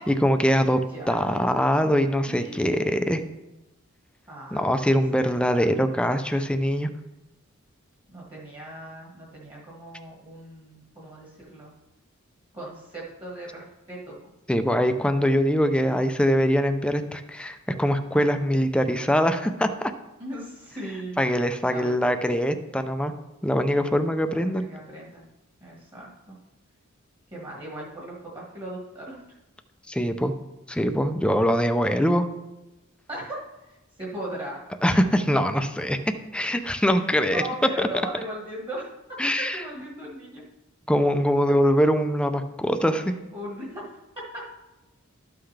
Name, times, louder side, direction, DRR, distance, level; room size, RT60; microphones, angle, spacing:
voice 1, 0.0-0.8 1.1-3.2 4.5-6.9 14.5-19.9 21.2-23.1 23.4-24.6 29.9-30.3 30.7-32.2 34.8-36.0 36.3-37.4 37.8-37.9 39.2-39.6 40.9-43.1, equal, 5° left, 8 dB, 0.5 m, -23 dB
voice 2, 1.5-1.9 2.3-2.7 4.3-5.0 5.3-5.5 8.1-11.7 12.5-14.2 15.8-16.4 20.2-21.2 21.7-22.6 24.3-25.2 25.6-26.4 27.3-29.4 31.9-32.3 33.1-34.6 37.3-38.9 39.4-40.4 43.3-44.4, right 1 dB, 25° right, -4 dB, 1.6 m, -38 dB
12.5 x 5.8 x 3.3 m, 1.0 s
head